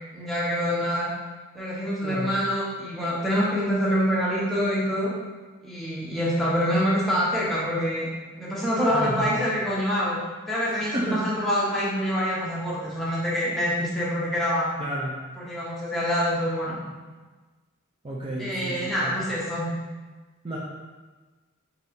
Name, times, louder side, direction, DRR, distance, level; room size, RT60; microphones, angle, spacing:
voice 1, 0.1-1.1 1.5-5.1 5.6-8.1 8.4-10.2 10.5-14.7 15.4-16.8 18.4-19.7, equal, ahead, -7 dB, 1.0 m, -26 dB
voice 2, 8.9-9.4 10.9-11.2 14.8-15.1 18.0-19.1 20.4-20.6, right 1 dB, 25° right, -5 dB, 0.5 m, -31 dB
4.0 x 3.5 x 3.7 m, 1.3 s
head